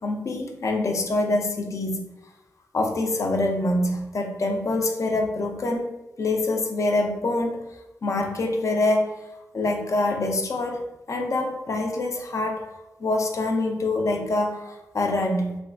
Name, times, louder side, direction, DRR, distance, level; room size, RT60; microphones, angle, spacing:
voice 1, 0.0-2.1 2.7-7.7 8.0-9.1 9.5-10.8 11.1-12.7 13.0-15.6, left 2 dB, 55° left, 3 dB, 0.4 m, -25 dB
3.1 x 2.2 x 2.4 m, 0.99 s
cardioid pair, 60°, 6 cm